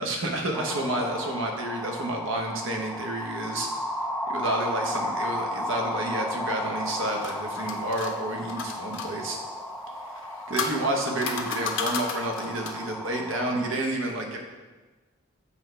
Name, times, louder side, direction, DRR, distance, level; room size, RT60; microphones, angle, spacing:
voice 1, 0.0-3.7 4.3-9.4 10.5-14.4, right 1 dB, 65° right, 2 dB, 1.0 m, -30 dB
sound 1, 0.5-13.7, left 1 dB, ahead, 0.3 m, -34 dB
sound 2, 6.8-9.1 10.1-12.9, left 5 dB, 65° left, 0.7 m, -34 dB
7.2 x 3.3 x 5.6 m, 1.2 s
head